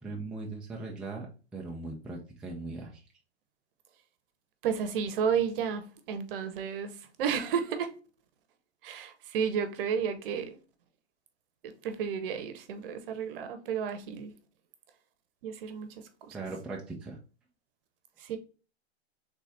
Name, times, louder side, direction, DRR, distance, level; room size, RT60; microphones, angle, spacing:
voice 1, 0.0-1.3 1.5-3.0 16.3-17.2, right 3 dB, 5° right, 0.4 m, -39 dB
voice 2, 4.6-6.9 7.2-7.9 8.8-10.6 11.8-14.3 15.4-15.9 16.3-16.4 18.2-18.4, right 7 dB, 55° right, 0.9 m, -32 dB
4.0 x 3.5 x 3.3 m
hypercardioid pair, 125°, 33 cm